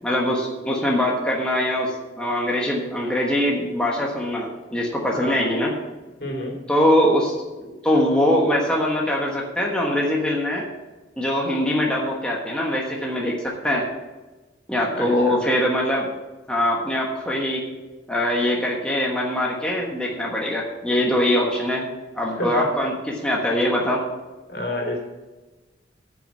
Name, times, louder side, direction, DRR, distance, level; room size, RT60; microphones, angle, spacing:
voice 1, 0.0-5.7 6.7-7.3 7.6-10.6 11.2-13.9 14.7-16.1 16.5-17.7 18.1-21.9 22.1-24.0, left 1 dB, 5° left, -3 dB, 1.3 m, -22 dB
voice 2, 6.2-6.6 14.9-15.4 22.3-22.7 24.5-25.0, left 1 dB, 55° left, 0 dB, 2.8 m, -29 dB
9.8 x 6.1 x 8.3 m, 1.2 s
head